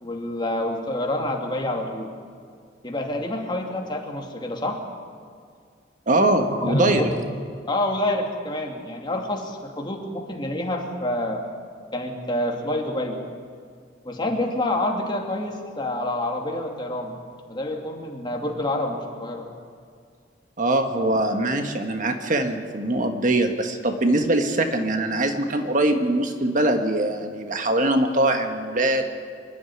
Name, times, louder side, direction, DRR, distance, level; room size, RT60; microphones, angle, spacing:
voice 1, 0.0-2.1 2.8-4.8 6.5-7.2 7.7-11.4 11.9-13.2 14.0-17.1 17.5-19.5 21.0-21.1, left 1 dB, 25° left, 1 dB, 2.7 m, -27 dB
voice 2, 6.1-7.0 20.6-29.1, right 1 dB, 45° right, 6 dB, 1.5 m, -22 dB
26.0 x 12.0 x 9.9 m, 2.1 s
head